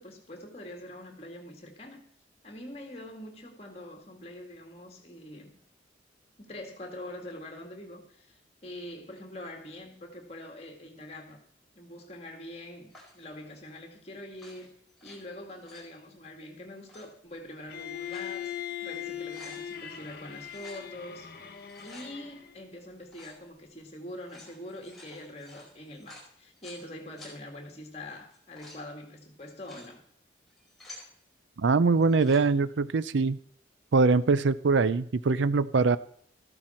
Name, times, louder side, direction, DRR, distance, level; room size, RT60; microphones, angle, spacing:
voice 1, 0.0-2.0 2.4-5.5 6.4-11.4 11.8-14.7 15.0-18.5 18.8-21.3 21.8-30.0, left 1 dB, 35° left, 2.2 m, -44 dB
sound 1, 12.9-13.3 14.3-15.2 15.5-15.9 16.8-17.0 17.7-18.3 18.8-18.9 19.1-19.6 20.5-20.9 21.5-22.1 23.1-23.4 24.1-26.8 27.2-27.3 28.2-28.8 29.4-29.9 30.5-31.1 32.0-32.4, left 1 dB, ahead, 4.7 m, -51 dB
Bowed string instrument, 17.7-22.6, left 10 dB, 50° left, 1.2 m, -40 dB
voice 2, 31.6-33.4 33.9-36.0, right 4 dB, 80° right, 0.5 m, -23 dB
14.0 x 11.5 x 4.4 m
head